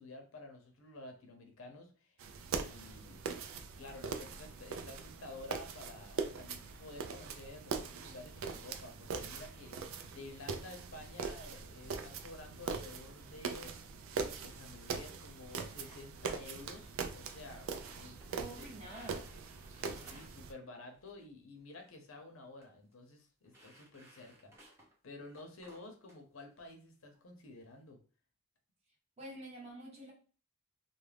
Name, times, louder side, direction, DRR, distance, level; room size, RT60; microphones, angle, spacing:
voice 1, 0.0-2.2 2.5-3.2 3.8-13.8 14.4-18.2 18.6-18.7 19.7-24.7 25.0-28.0, left 2 dB, 75° left, 0.7 m, -52 dB
sound 1, 2.2-20.5, right 5 dB, 75° right, 0.3 m, -42 dB
sound 2, 15.8-16.3 16.7-17.2 17.5-18.5 18.7-20.4 20.9-21.3 21.6-21.9 22.4-22.7 22.9-23.0 23.5-25.0 25.3-26.2 26.6-26.7 27.1-27.6, right 1 dB, 15° right, 0.7 m, -61 dB
voice 2, 18.4-19.3 29.2-30.1, right 1 dB, 30° right, 0.9 m, -48 dB
2.4 x 2.1 x 3.2 m
head